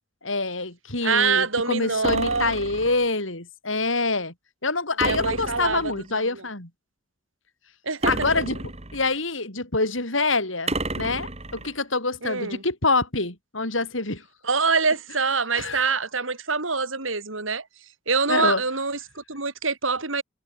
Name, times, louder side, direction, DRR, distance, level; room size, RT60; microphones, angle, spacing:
voice 1, 0.2-4.3 4.6-6.7 8.1-8.6 8.9-14.2 15.6-15.8 18.3-18.6, left 3 dB, 75° left, 7.6 m, -26 dB
voice 2, 1.0-2.5 5.0-6.5 7.8-8.4 12.2-12.6 14.4-17.7 18.1-20.2, right 4 dB, 85° right, 5.9 m, -25 dB
sound 1, 2.0-3.1 5.0-6.1 8.0-9.1 10.7-11.7, right 2 dB, 35° right, 7.6 m, -31 dB
head